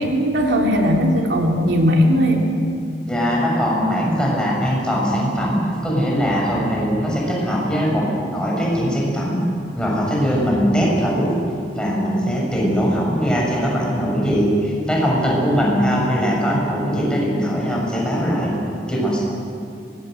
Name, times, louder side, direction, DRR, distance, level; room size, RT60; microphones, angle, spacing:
voice 1, 0.0-2.4, equal, 85° right, 1 dB, 3.1 m, -18 dB
voice 2, 3.1-9.4 9.7-11.3 11.7-18.5 18.9-19.2, equal, 5° left, -4 dB, 6.8 m, -20 dB
23.5 x 20.0 x 7.9 m, 2.5 s
head